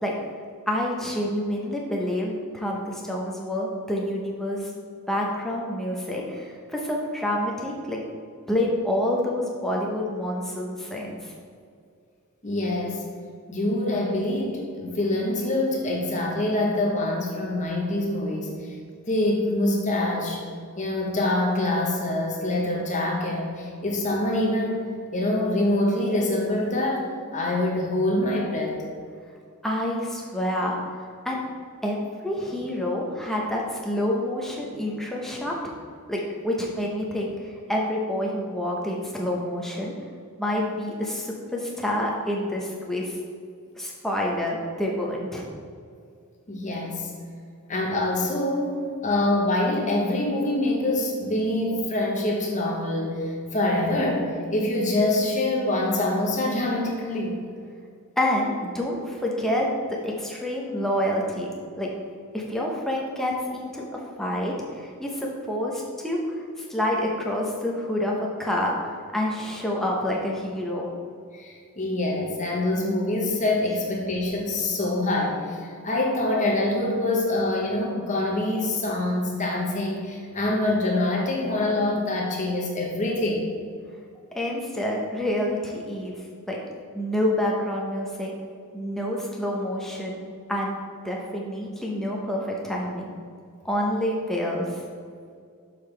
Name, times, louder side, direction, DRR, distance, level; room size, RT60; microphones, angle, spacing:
voice 1, 0.7-4.8 5.1-8.0 8.5-11.3 29.6-30.8 31.2-31.4 31.8-35.5 36.1-39.9 40.4-43.2 43.8-45.5 58.2-61.5 61.8-61.9 62.3-63.8 64.2-70.9 84.3-86.1 86.5-86.6 86.9-88.3 88.7-90.2 90.5-90.7 91.0-93.1 93.6-94.8, left 1 dB, ahead, -3 dB, 0.8 m, -28 dB
voice 2, 12.4-13.0 13.5-18.6 19.1-20.4 20.8-24.8 25.1-28.7 46.5-47.1 47.7-57.4 71.3-75.6 75.8-83.4, left 1 dB, 35° left, -1 dB, 1.0 m, -25 dB
6.6 x 5.6 x 3.3 m, 2.2 s
head